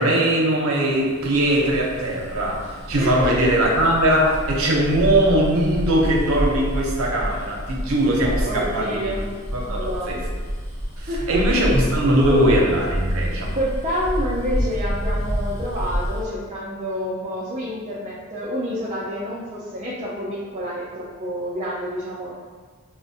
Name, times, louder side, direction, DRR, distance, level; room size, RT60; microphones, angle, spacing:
voice 1, 0.0-9.1 9.5-10.2 11.0-13.6, right 1 dB, 80° right, -2 dB, 0.7 m, -20 dB
Bus, 1.1-16.2, equal, 30° left, 1.0 m, -28 dB
voice 2, 3.0-3.3 8.5-9.3 9.7-10.2 11.1-11.7 12.0-12.6 13.5-22.4, equal, 30° right, -6 dB, 0.4 m, -28 dB
4.3 x 2.1 x 2.7 m, 1.5 s
head